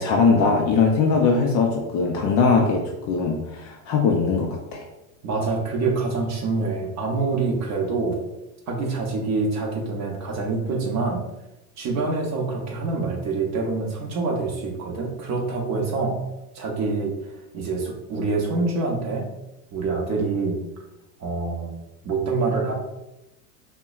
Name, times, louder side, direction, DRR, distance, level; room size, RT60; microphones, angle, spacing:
voice 1, 0.0-4.8, left 4 dB, 40° left, 1 dB, 0.4 m, -21 dB
voice 2, 5.2-8.2 8.7-11.2 11.8-16.2 16.5-17.1 17.5-19.3 19.7-20.6 21.2-21.7 22.0-22.7, right 3 dB, 35° right, 0 dB, 0.8 m, -26 dB
5.5 x 2.1 x 2.3 m, 0.95 s
supercardioid pair, 130°, 48 cm